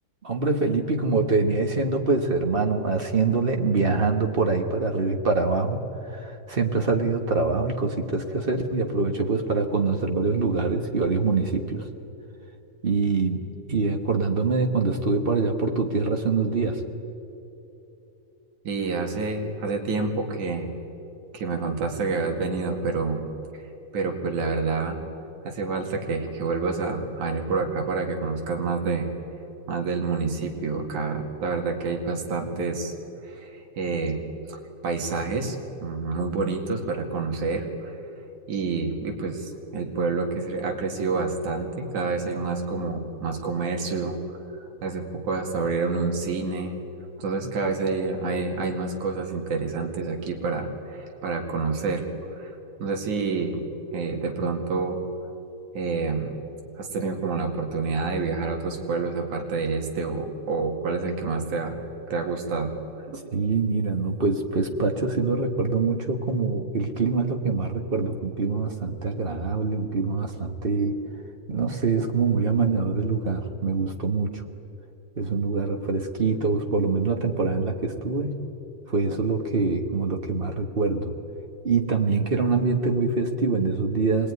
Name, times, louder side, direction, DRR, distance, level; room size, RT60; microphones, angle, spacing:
voice 1, 0.2-11.9 12.8-16.8 63.3-71.0 71.5-74.4 75.2-78.4 78.9-81.1 81.6-84.3, right 4 dB, 55° right, 3 dB, 0.6 m, -24 dB
voice 2, 18.7-20.7 21.3-23.3 23.5-23.6 23.9-25.0 25.5-29.1 29.7-32.9 33.3-34.6 34.8-38.0 38.5-44.1 44.8-46.8 47.2-52.0 52.3-52.5 52.8-53.6 53.9-55.0 55.7-56.4 56.8-61.8 62.1-62.7 63.1-63.2, right 4 dB, 85° right, 3 dB, 3.6 m, -28 dB
25.5 x 20.0 x 9.6 m, 2.9 s
omnidirectional pair, 3.3 m